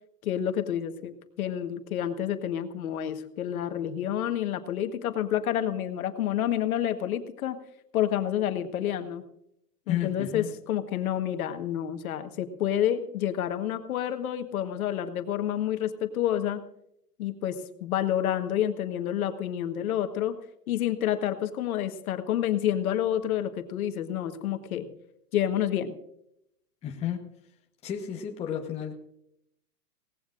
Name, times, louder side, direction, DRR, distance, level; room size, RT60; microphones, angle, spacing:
voice 1, 0.2-7.6 7.9-9.2 9.9-16.6 17.2-20.4 20.7-24.9 25.3-26.0, left 10 dB, 60° left, 8 dB, 1.4 m, -29 dB
voice 2, 9.9-10.5 26.8-27.2 27.8-28.9, left 9 dB, 15° left, 1 dB, 1.0 m, -32 dB
19.5 x 17.5 x 2.5 m, 0.78 s
hypercardioid pair, 145°, 47 cm